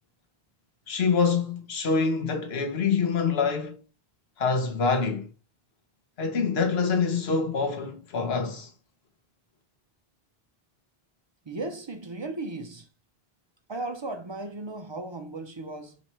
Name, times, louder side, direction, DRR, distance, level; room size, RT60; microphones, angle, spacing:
voice 1, 0.9-3.8 4.4-5.3 6.2-8.7, left 5 dB, 75° left, 1.1 m, -25 dB
voice 2, 11.4-12.9 13.7-16.0, right 2 dB, 35° right, 0.4 m, -36 dB
3.1 x 3.0 x 4.1 m
omnidirectional pair, 1.0 m